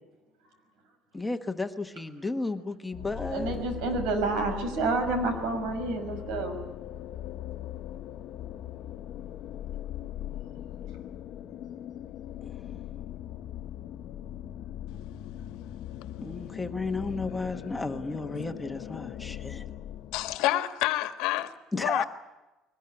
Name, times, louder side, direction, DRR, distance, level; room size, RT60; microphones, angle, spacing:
voice 1, 1.1-3.6 12.4-12.6 16.2-19.6 21.7-22.0, left 3 dB, 10° left, 1.2 m, -33 dB
sound 1, 2.9-20.4, left 12 dB, 55° left, 1.2 m, -40 dB
voice 2, 3.3-6.6, right 3 dB, 85° right, 5.9 m, -29 dB
voice 3, 20.1-22.0, left 15 dB, 85° left, 1.6 m, -28 dB
22.0 x 20.0 x 9.9 m
cardioid pair, 160°, 0 cm